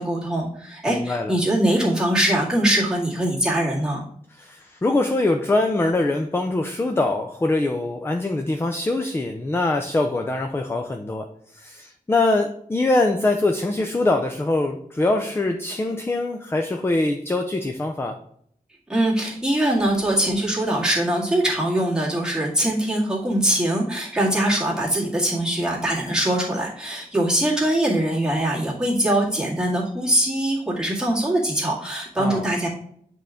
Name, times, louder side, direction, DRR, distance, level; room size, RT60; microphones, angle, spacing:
voice 1, 0.0-4.0 18.9-32.7, right 1 dB, 5° right, -6 dB, 1.9 m, -22 dB
voice 2, 0.9-1.4 4.3-11.3 11.5-18.2 32.2-32.5, left 2 dB, 15° left, 5 dB, 0.5 m, -23 dB
8.0 x 3.8 x 3.5 m, 0.67 s
wide cardioid pair, 160°, 14 cm